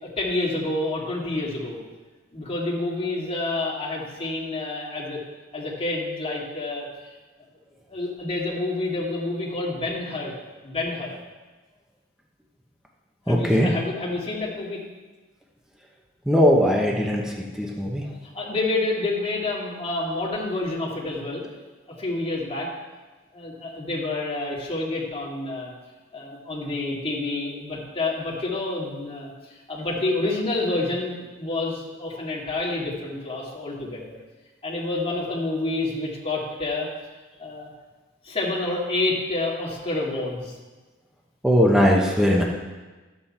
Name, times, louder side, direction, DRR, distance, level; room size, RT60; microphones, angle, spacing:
voice 1, 0.0-1.8 2.3-5.2 5.5-6.8 7.9-10.3 10.6-11.1 13.3-14.8 18.0-21.4 22.0-22.7 23.3-25.7 26.1-34.2 34.6-36.9 37.4-37.7 38.2-40.6, left 2 dB, 30° left, -5 dB, 2.4 m, -28 dB
voice 2, 13.3-13.7 16.3-17.2 17.6-18.0 41.4-42.4, equal, 5° right, -1 dB, 1.0 m, -19 dB
11.5 x 8.1 x 4.3 m, 1.2 s
head